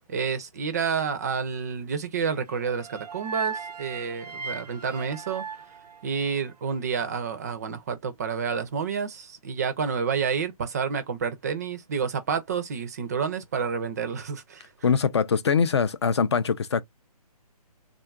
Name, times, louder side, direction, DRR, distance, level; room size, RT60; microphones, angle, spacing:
voice 1, 0.1-5.4 6.0-14.7, right 6 dB, 25° right, 0.4 m, -29 dB
sound 1, 2.5-6.7, right 5 dB, 85° right, 0.5 m, -37 dB
voice 2, 14.8-16.8, left 6 dB, 45° left, 0.4 m, -23 dB
3.6 x 2.3 x 2.3 m
figure-of-eight pair, 150°, 20 cm